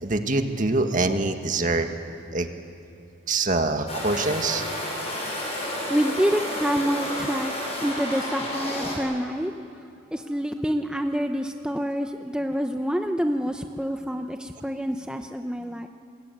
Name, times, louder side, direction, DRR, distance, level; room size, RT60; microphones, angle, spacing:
voice 1, 0.0-1.9 2.3-2.5 3.3-4.6, right 3 dB, 45° right, 6 dB, 1.8 m, -24 dB
sound 1, 3.9-9.0, left 1 dB, 35° left, 7.4 m, -31 dB
voice 2, 5.9-9.5 10.1-15.9, equal, 5° right, 5 dB, 0.8 m, -27 dB
27.5 x 22.0 x 9.3 m, 2.4 s
head